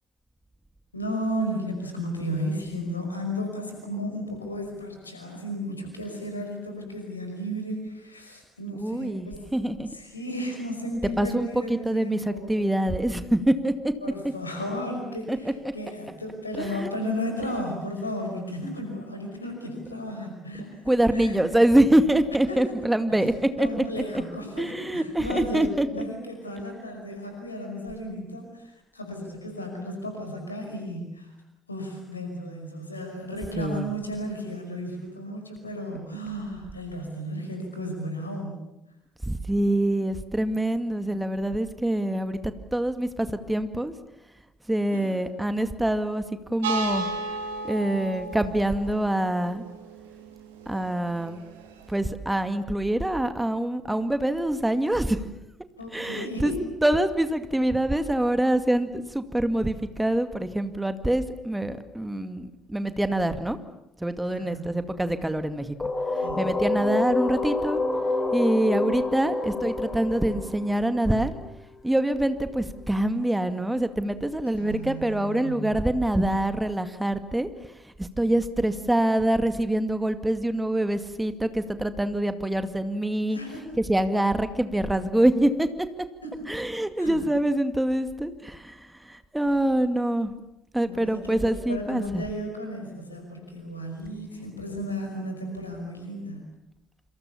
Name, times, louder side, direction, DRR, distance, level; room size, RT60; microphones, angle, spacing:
voice 1, 0.9-9.5 9.9-12.7 14.0-21.4 22.5-22.7 23.6-31.3 31.7-38.6 44.9-45.1 55.8-56.6 64.3-64.6 66.2-66.4 74.6-75.7 83.3-83.8 86.2-86.5 87.0-87.2 90.9-96.4, equal, 90° left, 4 dB, 5.4 m, -34 dB
voice 2, 8.7-9.9 11.2-13.9 15.3-15.4 16.6-16.9 20.9-23.8 24.6-25.9 33.6-33.9 39.2-43.9 44.7-47.1 47.6-49.6 50.7-51.4 51.9-55.2 55.9-56.5 56.8-63.6 64.0-65.7 66.4-67.8 68.3-71.3 71.8-77.5 77.8-83.4 83.8-85.7 86.5-90.3 90.7-92.3, right 1 dB, 10° right, 10 dB, 2.2 m, -25 dB
sound 1, 46.6-51.9, right 2 dB, 75° right, 3.2 m, -34 dB
sound 2, 65.8-71.5, left 3 dB, 25° left, 5.7 m, -28 dB
27.5 x 26.5 x 7.1 m, 0.89 s
figure-of-eight pair, 50°, 0 cm